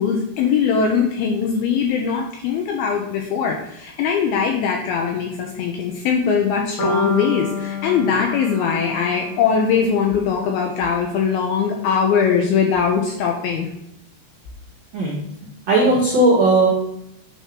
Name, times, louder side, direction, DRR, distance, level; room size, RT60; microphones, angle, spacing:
voice 1, 0.0-13.7, left 6 dB, 80° left, 1 dB, 2.2 m, -21 dB
sound 1, 6.8-10.9, left 2 dB, 50° left, 2.2 m, -28 dB
voice 2, 15.7-16.7, right 2 dB, 70° right, -5 dB, 1.6 m, -16 dB
9.0 x 3.0 x 5.8 m, 0.80 s
omnidirectional pair, 5.1 m